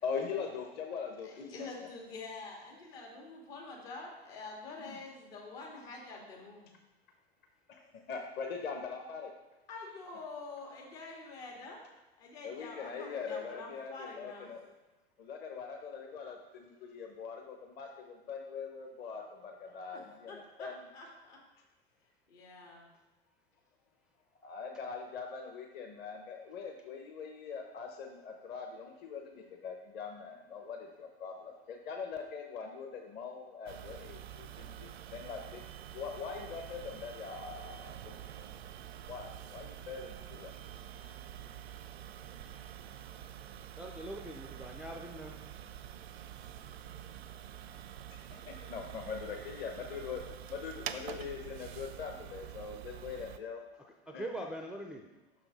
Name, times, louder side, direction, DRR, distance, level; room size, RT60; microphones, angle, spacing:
voice 1, 0.0-1.3 1.6-1.9 4.8-5.0 7.7-9.3 12.4-14.7 15.2-20.9 24.4-35.6 35.9-38.0 39.1-40.5 48.1-53.6 54.1-54.5, left 5 dB, 30° left, 3 dB, 0.8 m, -42 dB
voice 2, 1.2-6.7 9.7-11.9 12.2-14.5 19.7-20.0 20.3-21.4 22.3-22.9, left 3 dB, 65° left, -1 dB, 2.0 m, -47 dB
sound 1, 33.7-53.4, right 10 dB, 70° right, 0.5 m, -47 dB
voice 3, 43.8-45.3 54.1-55.1, right 1 dB, 5° right, 1 dB, 0.4 m, -42 dB
5.8 x 5.7 x 4.1 m, 1.1 s
figure-of-eight pair, 90°, 32 cm